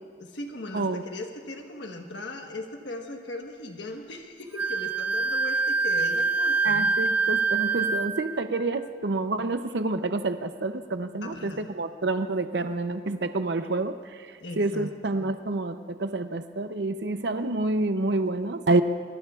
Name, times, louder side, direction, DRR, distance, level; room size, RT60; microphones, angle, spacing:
voice 1, 0.2-6.9 11.2-11.7 14.4-14.9, left 2 dB, 80° left, 2 dB, 1.3 m, -38 dB
Wind instrument woodwind instrument, 4.6-8.3, right 4 dB, 10° right, 0.3 m, -25 dB
voice 2, 6.6-13.9 14.6-18.8, right 2 dB, 70° right, 9 dB, 0.6 m, -28 dB
25.0 x 22.0 x 2.4 m, 2.3 s
head